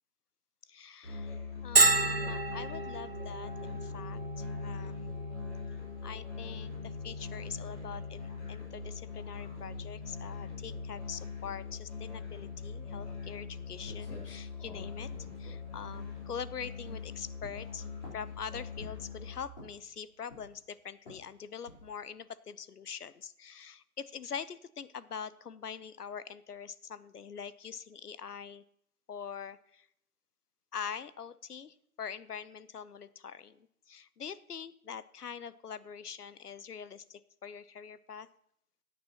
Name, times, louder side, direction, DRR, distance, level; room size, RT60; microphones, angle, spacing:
voice 1, 0.7-1.4 1.6-5.2 6.0-15.1 15.4-17.9 18.1-28.6 29.1-29.9 30.7-38.3, left 7 dB, 85° left, 16 dB, 0.8 m, -44 dB
Musical instrument, 1.0-19.4, left 5 dB, 20° left, 3.3 m, -42 dB
Bell, 1.8-17.2, right 3 dB, 45° right, 0.5 m, -35 dB
sound 1, 13.8-16.4 16.8-17.1 17.4-18.4 18.8-19.2 19.5-19.9 20.3-20.7 21.1-21.3 21.7-22.0, left 1 dB, 35° left, 3.9 m, -51 dB
17.0 x 9.4 x 2.9 m, 0.74 s
figure-of-eight pair, 165°, 45 cm